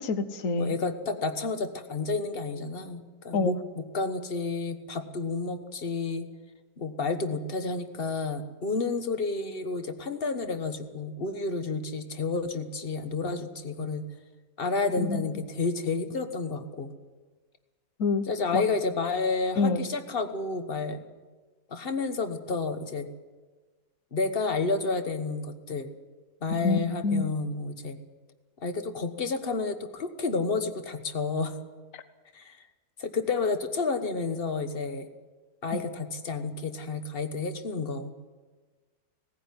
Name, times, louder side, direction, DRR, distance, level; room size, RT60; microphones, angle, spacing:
voice 1, 0.0-0.8 3.3-3.5 15.0-15.2 18.0-18.2 18.5-18.6 19.6-19.9 26.6-27.2, left 3 dB, 55° left, 11 dB, 1.4 m, -26 dB
voice 2, 0.6-6.3 6.8-14.1 14.6-16.9 18.3-21.0 21.7-23.1 24.1-25.9 26.4-28.0 28.6-31.6 32.3-32.6 33.0-35.1 35.6-38.1, left 4 dB, 40° left, 9 dB, 1.3 m, -30 dB
18.0 x 15.0 x 9.7 m, 1.3 s
omnidirectional pair, 1.8 m